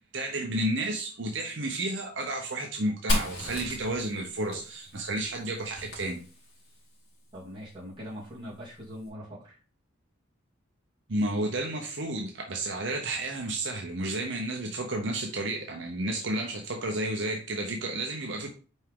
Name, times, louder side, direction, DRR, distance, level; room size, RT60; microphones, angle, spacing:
voice 1, 0.1-6.2 11.1-18.5, right 1 dB, 65° right, 0.8 m, -31 dB
Fire, 3.1-6.8, equal, 55° left, 2.7 m, -34 dB
voice 2, 7.3-9.6, equal, 25° right, 2.9 m, -42 dB
5.3 x 4.8 x 3.7 m
head